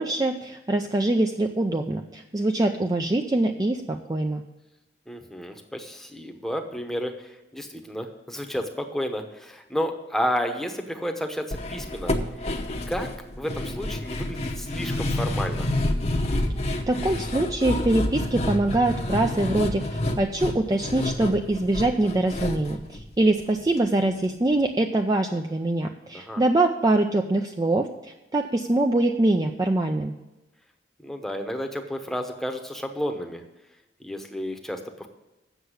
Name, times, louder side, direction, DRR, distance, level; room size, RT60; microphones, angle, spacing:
voice 1, 0.0-4.4 16.9-30.1, right 2 dB, 20° right, 4 dB, 0.4 m, -24 dB
voice 2, 5.1-12.1 12.9-13.1 13.4-15.7 26.1-26.4 31.0-33.4 34.0-35.1, equal, ahead, 4 dB, 0.9 m, -31 dB
sound 1, 11.5-23.8 24.1-24.2 24.5-24.6, left 1 dB, 35° left, 0.9 m, -29 dB
8.0 x 6.7 x 8.1 m, 1.0 s
head